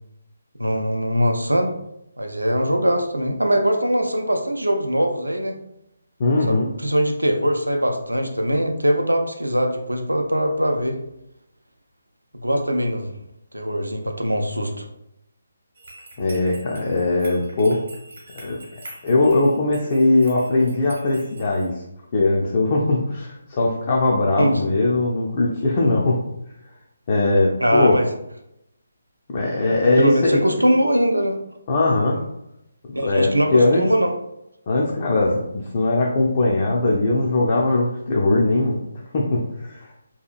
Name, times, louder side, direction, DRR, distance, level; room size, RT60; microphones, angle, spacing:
voice 1, 0.6-1.7 2.2-5.6 6.5-11.0 12.3-13.1 13.5-14.8 24.4-24.7 27.6-28.1 30.0-31.4 33.0-34.1, equal, 80° right, 4 dB, 0.4 m, -21 dB
voice 2, 6.2-6.7 16.2-17.8 18.4-18.6 19.0-21.7 22.1-26.2 27.1-28.0 29.3-30.4 31.7-32.2 32.9-33.9 34.7-38.8 39.1-39.9, left 2 dB, 35° left, -3 dB, 0.4 m, -20 dB
sound 1, 15.7-21.7, right 2 dB, 55° right, 0.9 m, -44 dB
2.7 x 2.4 x 2.4 m, 0.81 s
figure-of-eight pair, 145°, 0 cm